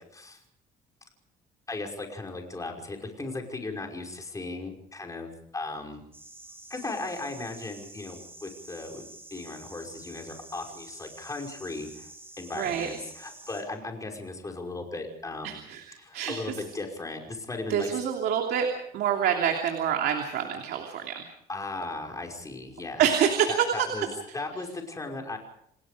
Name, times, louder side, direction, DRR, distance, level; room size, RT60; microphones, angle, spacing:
voice 1, 1.7-6.0 6.7-9.0 9.3-12.1 12.4-15.7 16.0-17.9 21.5-23.0 23.5-24.1 24.3-25.4, left 3 dB, 20° left, 2 dB, 5.5 m, -37 dB
sound 1, 6.1-13.6, right 2 dB, 15° right, 6.9 m, -48 dB
voice 2, 12.5-12.9 15.4-16.5 17.7-18.7 18.9-21.3 23.0-23.9, right 8 dB, 75° right, 3 dB, 3.0 m, -27 dB
28.5 x 19.0 x 5.1 m, 0.73 s
cardioid pair, 110°, 17 cm